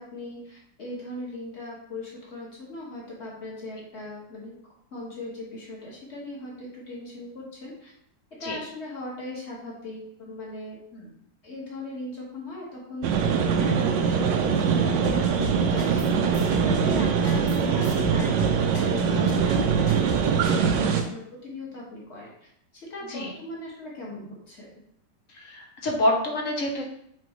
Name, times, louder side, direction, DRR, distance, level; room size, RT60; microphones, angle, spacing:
voice 1, 0.0-4.6 4.9-7.9 8.4-10.8 11.4-16.4 16.7-22.3 22.7-24.8, left 1 dB, 40° left, -4 dB, 2.0 m, -39 dB
sound 1, 13.0-21.0, right 6 dB, 85° right, 1.4 m, -23 dB
sound 2, 15.0-16.1 16.3-21.0, left 4 dB, 20° left, 1.0 m, -36 dB
voice 2, 25.3-26.9, left 1 dB, 55° left, 0 dB, 1.2 m, -28 dB
6.1 x 5.0 x 3.1 m, 0.73 s
omnidirectional pair, 1.9 m